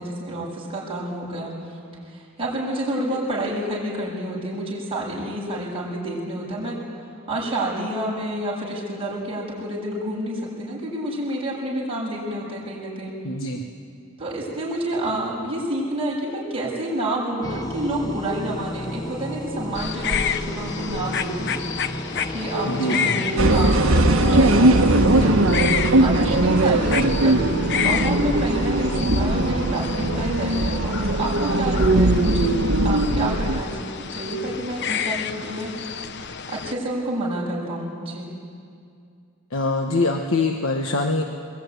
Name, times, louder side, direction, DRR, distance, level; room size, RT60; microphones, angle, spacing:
voice 1, 0.0-1.8 2.0-6.8 7.3-13.2 14.2-21.5 22.0-32.6 32.8-35.7 36.1-38.3, right 1 dB, 25° right, -5 dB, 7.5 m, -29 dB
voice 2, 13.2-13.6 22.6-23.2 39.5-41.2, left 2 dB, 70° left, 3 dB, 1.3 m, -23 dB
sound 1, 17.4-31.5, left 1 dB, 20° left, 1.0 m, -33 dB
sound 2, 19.8-36.7, left 7 dB, 55° left, 0.8 m, -31 dB
sound 3, 23.4-33.6, right 1 dB, 75° right, 1.3 m, -19 dB
22.5 x 21.5 x 9.7 m, 2.4 s
head